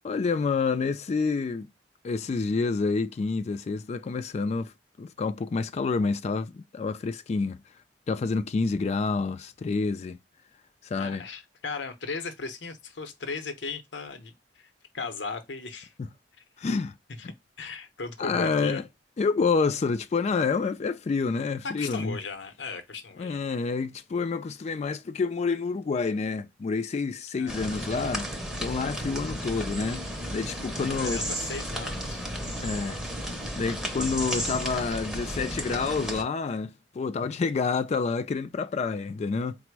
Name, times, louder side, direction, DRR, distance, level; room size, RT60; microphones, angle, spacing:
voice 1, 0.0-1.7 2.0-4.7 5.0-7.6 8.1-10.2 10.8-11.3 16.0-16.1 16.6-16.9 17.2-17.3 18.2-18.8 19.2-22.2 23.2-28.3 28.6-30.0 30.3-31.2 32.6-33.0 33.5-39.6, left 4 dB, 35° left, 0.3 m, -28 dB
voice 2, 11.0-15.9 17.6-18.8 21.6-23.4 27.4-27.8 30.9-32.2, left 4 dB, 75° left, 0.7 m, -37 dB
sound 1, 27.5-36.2, equal, 5° right, 0.6 m, -33 dB
4.2 x 2.0 x 4.5 m
head